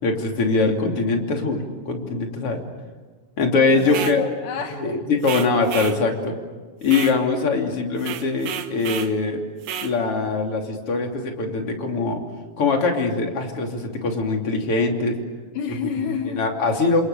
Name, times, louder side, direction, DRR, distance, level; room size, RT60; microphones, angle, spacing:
voice 1, 0.0-2.6 3.4-4.3 4.7-6.3 6.8-9.4 9.8-12.2 12.6-15.1 16.3-17.0, left 3 dB, 40° left, 2 dB, 3.8 m, -22 dB
voice 2, 3.7-5.0 15.5-16.4, left 6 dB, 75° left, 5 dB, 2.9 m, -29 dB
sound 1, 3.8-4.2 5.2-6.0 6.8-7.2 8.0-9.1 9.6-9.9, right 9 dB, 90° right, 3.1 m, -31 dB
30.0 x 27.0 x 6.9 m, 1.3 s
omnidirectional pair, 3.9 m